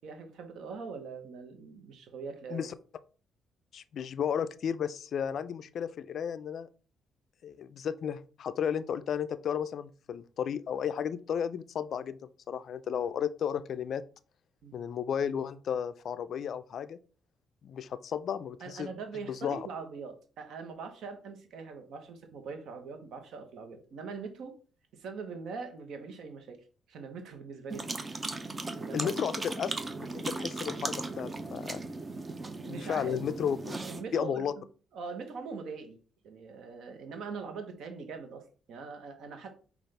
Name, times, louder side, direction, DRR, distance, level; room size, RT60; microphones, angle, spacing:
voice 1, 0.0-2.7 14.6-14.7 18.6-24.6 24.9-26.6 26.9-28.0 28.7-29.2 32.6-33.2 33.8-34.6 34.9-36.0 36.2-39.5, right 5 dB, 75° right, 6 dB, 0.9 m, -42 dB
voice 2, 3.7-6.7 7.4-14.0 14.7-17.0 17.6-18.9 19.3-19.7 28.9-29.7 30.0-31.8 32.7-33.8 34.1-34.5, left 8 dB, 60° left, 14 dB, 0.3 m, -33 dB
sound 1, 27.7-34.0, right 3 dB, 25° right, 0.6 m, -37 dB
5.5 x 2.4 x 3.2 m, 0.39 s
cardioid pair, 90°, 0 cm